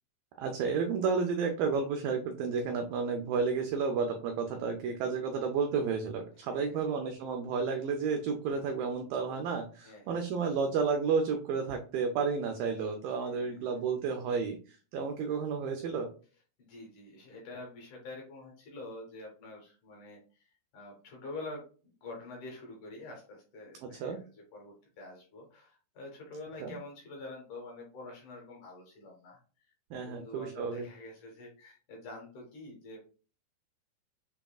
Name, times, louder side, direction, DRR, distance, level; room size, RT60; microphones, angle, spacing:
voice 1, 0.4-16.1 23.8-24.2 26.6-26.8 29.9-30.9, right 5 dB, 85° right, 4 dB, 2.0 m, -31 dB
voice 2, 6.4-6.8 9.8-10.5 13.3-13.7 16.6-33.0, left 2 dB, 65° left, -1 dB, 2.2 m, -47 dB
7.2 x 2.9 x 2.3 m, 0.38 s
omnidirectional pair, 4.7 m